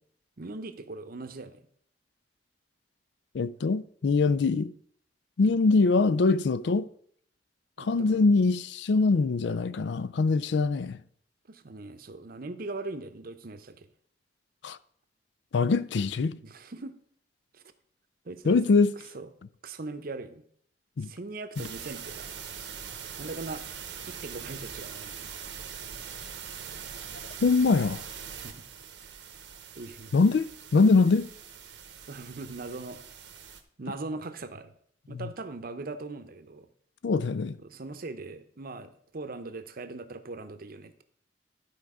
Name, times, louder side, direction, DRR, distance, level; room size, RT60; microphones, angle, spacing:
voice 1, 0.4-1.6 5.4-5.6 7.8-8.3 11.5-13.9 16.4-17.0 17.5-17.6 18.2-18.6 19.1-19.3 19.6-20.4 21.0-22.3 23.2-23.6 24.1-25.3 28.4-28.6 29.7-30.3 32.0-33.0 33.8-34.7 35.1-36.7 37.6-41.0, right 3 dB, 55° right, 0.7 m, -40 dB
voice 2, 3.3-4.7 5.4-6.9 7.8-11.0 14.6-14.8 15.5-16.4 18.5-18.9 21.0-21.1 27.4-28.0 30.1-31.3 35.1-35.3 37.0-37.6, left 4 dB, 75° left, 0.4 m, -23 dB
sound 1, 21.5-33.6, right 7 dB, 80° right, 1.0 m, -42 dB
11.5 x 4.6 x 4.8 m
head